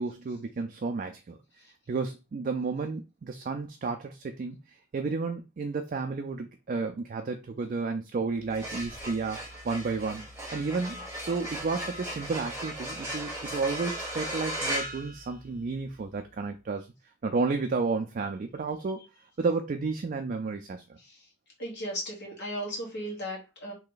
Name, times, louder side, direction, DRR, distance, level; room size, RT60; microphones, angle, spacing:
voice 1, 0.0-1.4 1.9-16.9 17.2-19.1 19.4-21.0, right 4 dB, 40° right, 0.3 m, -32 dB
sound 1, 8.4-15.8, right 1 dB, 10° right, 1.4 m, -37 dB
voice 2, 21.6-23.7, equal, 50° left, 1.5 m, -36 dB
3.2 x 2.8 x 3.8 m
head